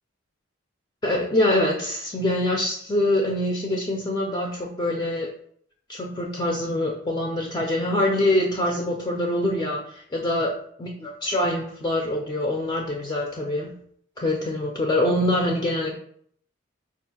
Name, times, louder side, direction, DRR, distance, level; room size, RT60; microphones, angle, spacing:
voice 1, 1.0-5.3 5.9-13.7 14.2-15.9, left 1 dB, 20° left, -1 dB, 0.4 m, -24 dB
4.4 x 2.4 x 2.8 m, 0.63 s
head